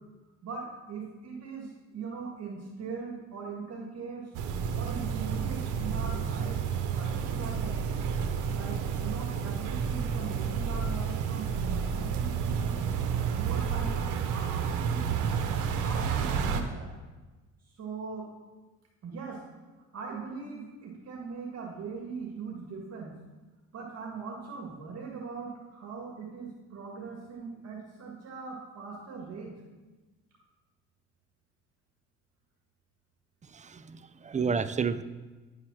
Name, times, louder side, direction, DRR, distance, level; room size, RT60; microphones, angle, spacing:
voice 1, 0.4-4.2 4.7-6.6 6.9-7.8 8.5-12.7 13.3-14.1 14.3-15.3 15.8-16.9 17.8-18.2 19.0-19.4 19.9-23.2 23.7-29.5, right 5 dB, 55° right, -2 dB, 1.9 m, -40 dB
sound 1, 4.3-16.6, right 7 dB, 80° right, 0.9 m, -30 dB
voice 2, 33.5-35.0, right 5 dB, 25° right, 12 dB, 0.4 m, -30 dB
9.7 x 4.8 x 6.3 m, 1.2 s
cardioid pair, 90°, 30 cm